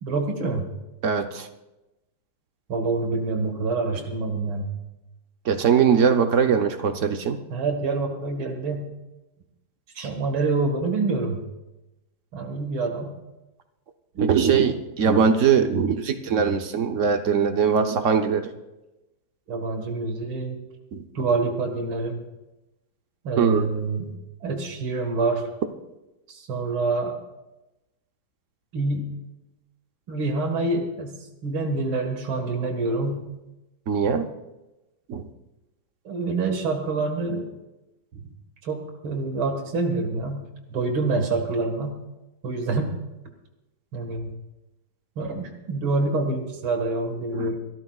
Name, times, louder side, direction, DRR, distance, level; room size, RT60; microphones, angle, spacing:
voice 1, 0.0-0.7 2.7-4.8 7.5-8.9 9.9-11.4 12.3-13.1 19.5-20.6 21.1-22.2 23.2-24.1 24.4-25.5 26.3-27.2 28.7-29.1 30.1-31.2 31.4-33.4 36.0-37.5 38.1-38.3 38.6-40.4 40.7-42.0 42.4-43.0 43.9-44.3 45.2-47.6, right 3 dB, 85° right, 4 dB, 2.6 m, -26 dB
voice 2, 1.0-1.5 5.5-7.4 14.2-18.5 20.9-21.0 23.4-23.7 33.9-34.3 35.1-35.3 47.3-47.5, right 6 dB, 55° right, 7 dB, 0.9 m, -21 dB
28.5 x 13.5 x 2.4 m, 1.0 s
omnidirectional pair, 2.2 m